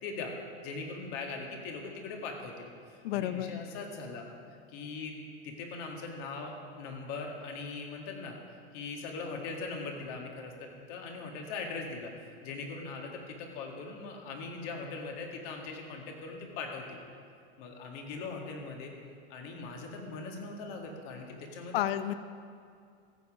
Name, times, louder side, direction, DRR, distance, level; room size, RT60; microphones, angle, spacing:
voice 1, 0.0-0.3 0.6-4.3 4.7-5.2 5.4-8.4 8.7-12.1 12.4-17.0 17.6-18.9 19.3-21.8, left 4 dB, 50° left, 2 dB, 2.0 m, -40 dB
voice 2, 3.0-3.6 21.7-22.1, left 12 dB, 65° left, 13 dB, 0.6 m, -31 dB
14.5 x 7.4 x 4.9 m, 2.3 s
hypercardioid pair, 130°, 33 cm